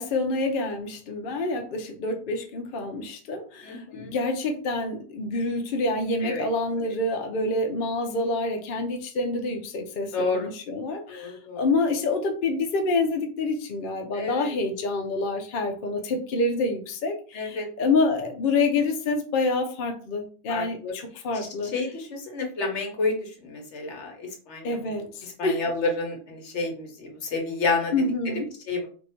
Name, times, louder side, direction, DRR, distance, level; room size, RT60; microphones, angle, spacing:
voice 1, 0.0-21.7 24.6-25.7 27.9-28.5, left 3 dB, 70° left, 4 dB, 0.5 m, -27 dB
voice 2, 3.6-4.1 6.2-6.5 6.8-6.9 10.1-10.5 11.1-11.6 14.1-14.5 17.3-17.7 20.5-20.9 21.7-24.9 25.4-27.9 28.7-28.9, left 3 dB, 55° left, 2 dB, 1.1 m, -30 dB
2.7 x 2.6 x 4.2 m, 0.41 s
omnidirectional pair, 1.6 m